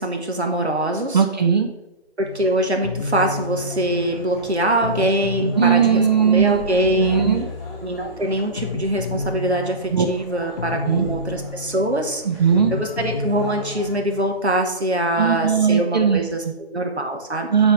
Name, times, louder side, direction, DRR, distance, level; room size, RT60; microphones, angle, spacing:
voice 1, 0.0-1.2 2.2-7.2 7.8-12.2 12.7-17.5, right 1 dB, 80° right, 3 dB, 1.5 m, -23 dB
voice 2, 1.1-1.7 5.6-6.6 6.9-7.5 9.9-10.1 10.9-11.1 12.3-12.7 15.2-16.2 17.5-17.7, right 7 dB, 40° right, 5 dB, 0.6 m, -18 dB
sound 1, 2.2-14.4, left 3 dB, 40° left, 0.5 m, -32 dB
sound 2, 3.2-14.0, equal, ahead, 1.7 m, -40 dB
8.9 x 3.5 x 4.8 m, 0.97 s
figure-of-eight pair, 145°, 33 cm